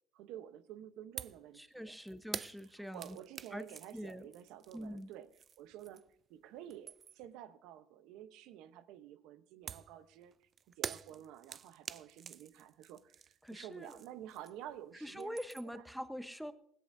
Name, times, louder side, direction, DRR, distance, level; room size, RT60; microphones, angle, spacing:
voice 1, 0.1-2.0 2.9-5.3 5.6-6.0 6.3-10.3 10.8-15.4 15.6-15.9, right 11 dB, 80° right, 0.9 m, -51 dB
sound 1, 1.2-1.5 1.7-6.2 6.6-7.3 9.7-14.8 15.0-15.8, right 7 dB, 45° right, 0.5 m, -47 dB
voice 2, 1.6-3.2 3.5-3.6 3.9-4.3 4.7-5.1 13.4-14.0 14.9-16.5, equal, ahead, 1.0 m, -44 dB
18.5 x 16.5 x 2.7 m
cardioid pair, 100°, 0 cm